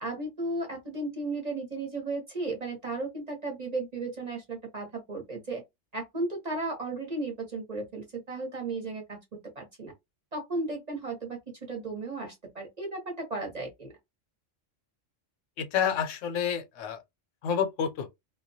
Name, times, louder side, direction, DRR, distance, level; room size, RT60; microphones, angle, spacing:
voice 1, 0.0-5.6 5.9-9.2 9.6-9.9 10.3-13.9, right 2 dB, 40° right, 0.7 m, -35 dB
voice 2, 15.6-17.0 17.4-18.1, left 8 dB, 80° left, 0.9 m, -29 dB
2.3 x 2.1 x 2.6 m
omnidirectional pair, 1.3 m